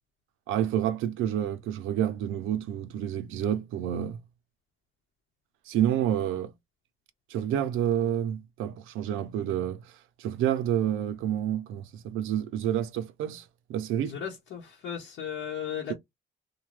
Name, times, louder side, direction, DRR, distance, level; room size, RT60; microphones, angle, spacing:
voice 1, 0.5-4.2 5.7-6.5 7.3-9.8 10.2-13.4 13.7-14.2, right 10 dB, 90° right, 0.5 m, -29 dB
voice 2, 14.0-15.9, left 8 dB, 80° left, 0.9 m, -36 dB
2.7 x 2.2 x 3.1 m
cardioid pair, 90°, 20 cm